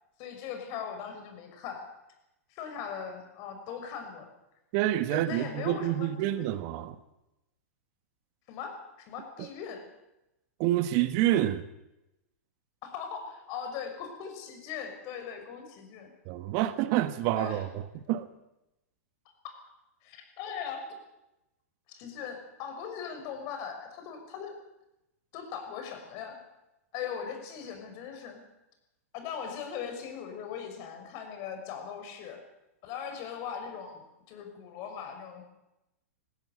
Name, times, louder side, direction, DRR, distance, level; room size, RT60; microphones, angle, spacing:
voice 1, 0.2-1.8 2.5-4.3 5.1-6.5 8.5-8.8 9.1-9.8 12.8-16.1 17.4-17.6 19.4-19.6 20.0-20.8 21.9-24.5 25.3-26.4 26.9-28.4 29.1-32.4 32.8-35.4, left 7 dB, 45° left, 6.2 m, -39 dB
voice 2, 4.7-6.9 9.4-9.5 10.6-11.7 16.3-18.3, right 13 dB, 45° right, 1.3 m, -28 dB
20.5 x 15.0 x 8.5 m
hypercardioid pair, 115°, 8 cm